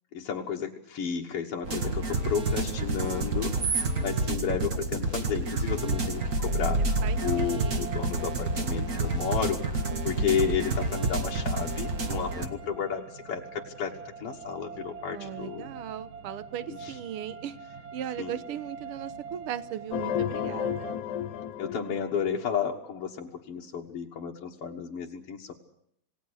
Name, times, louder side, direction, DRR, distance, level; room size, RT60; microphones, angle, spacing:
voice 1, 0.1-13.9 14.2-15.7 16.7-17.0 18.2-18.4 21.6-25.5, left 7 dB, 55° left, -1 dB, 2.1 m, -32 dB
sound 1, 1.6-12.5, right 2 dB, 35° right, 1.7 m, -29 dB
sound 2, 5.9-20.9, right 5 dB, 90° right, 4.0 m, -44 dB
voice 2, 6.5-7.9 9.9-10.3 15.1-17.6 17.9-20.9, right 10 dB, 60° right, 12 dB, 1.6 m, -38 dB
sound 3, 19.9-22.7, left 10 dB, 70° left, 2.4 m, -32 dB
28.0 x 18.0 x 6.5 m, 0.70 s
omnidirectional pair, 3.7 m